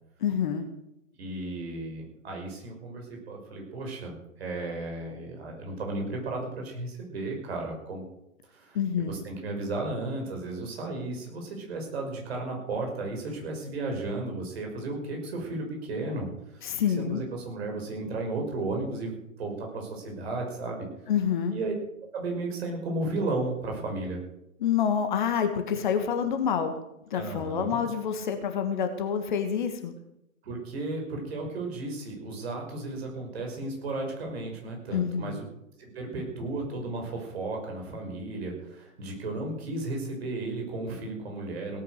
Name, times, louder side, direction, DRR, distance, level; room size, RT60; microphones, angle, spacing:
voice 1, 0.2-0.6 8.7-9.1 16.6-17.2 21.1-21.5 24.6-26.8 27.1-29.9 34.9-35.4, left 7 dB, 35° left, 7 dB, 1.5 m, -27 dB
voice 2, 1.2-8.0 8.5-8.8 9.0-20.9 21.5-21.7 22.1-24.2 27.1-27.8 30.4-35.4 35.8-41.8, right 2 dB, 45° right, 1 dB, 5.7 m, -34 dB
17.5 x 9.2 x 6.7 m, 0.85 s
figure-of-eight pair, 130°, 43 cm